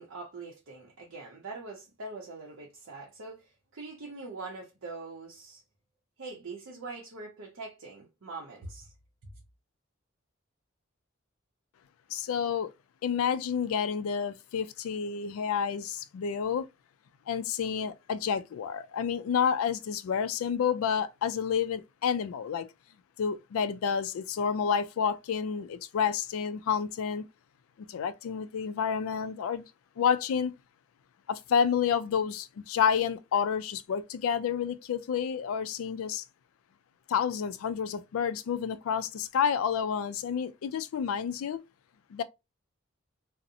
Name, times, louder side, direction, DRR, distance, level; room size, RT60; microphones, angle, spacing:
voice 1, 0.0-5.6 6.2-8.9, right 3 dB, 75° right, 0.6 m, -43 dB
voice 2, 12.1-12.7 13.0-16.7 17.3-22.7 23.2-27.2 27.9-29.6 30.0-30.5 31.3-36.2 37.1-41.6 42.1-42.2, left 7 dB, 80° left, 0.3 m, -29 dB
2.5 x 2.0 x 2.6 m
head